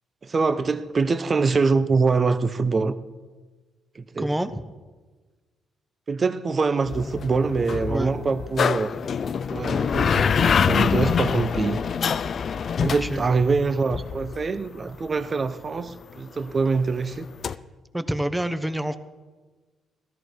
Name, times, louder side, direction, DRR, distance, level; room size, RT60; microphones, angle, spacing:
voice 1, 0.2-2.9 3.9-4.3 6.1-8.9 9.5-11.8 12.8-17.3, right 4 dB, 35° right, 11 dB, 1.0 m, -24 dB
voice 2, 4.2-4.6 7.9-8.1 12.8-13.2 17.9-19.0, right 1 dB, 10° right, 10 dB, 1.1 m, -27 dB
sound 1, 6.9-14.5 17.4-17.6, left 7 dB, 50° left, 0.5 m, -25 dB
18.5 x 13.0 x 4.8 m, 1.3 s
cardioid pair, 90°, 0 cm